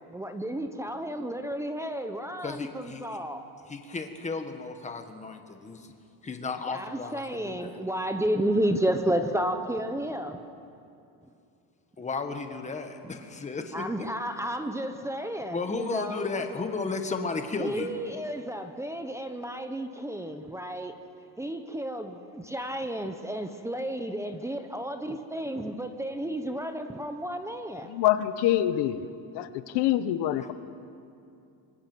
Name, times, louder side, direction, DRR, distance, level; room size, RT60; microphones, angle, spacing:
voice 1, 0.1-3.4 6.7-10.4 13.7-16.6 17.6-20.9 21.4-27.9, right 1 dB, 5° right, 7 dB, 0.8 m, -32 dB
voice 2, 2.4-3.2 3.7-5.9 6.2-7.8 12.0-13.9 15.5-17.9 30.4-30.5, left 4 dB, 15° left, 6 dB, 1.5 m, -34 dB
voice 3, 27.9-29.1 29.3-30.5, left 12 dB, 85° left, 11 dB, 1.2 m, -25 dB
26.0 x 24.0 x 6.2 m, 2.6 s
cardioid pair, 165°, 40 cm